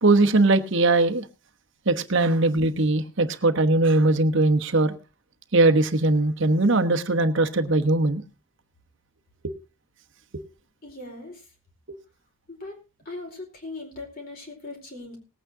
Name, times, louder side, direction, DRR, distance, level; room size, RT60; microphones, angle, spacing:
voice 1, 0.0-1.2 1.9-4.9 5.5-8.2, right 2 dB, 55° right, 1.1 m, -20 dB
voice 2, 10.8-11.5 12.5-12.8 13.0-15.2, left 2 dB, 40° left, 4.6 m, -39 dB
19.5 x 8.8 x 3.7 m
head